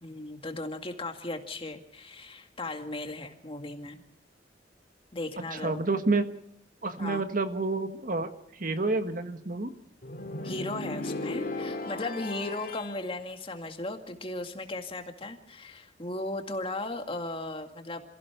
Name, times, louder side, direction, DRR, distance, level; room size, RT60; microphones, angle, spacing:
voice 1, 0.0-4.0 5.1-5.8 7.0-7.2 10.4-18.0, left 2 dB, 30° left, 5 dB, 2.1 m, -36 dB
voice 2, 5.5-6.3 6.8-9.7, right 3 dB, 50° right, 8 dB, 1.5 m, -29 dB
sound 1, 10.0-13.0, left 2 dB, 55° left, 2.3 m, -36 dB
28.0 x 16.0 x 5.9 m, 0.75 s
head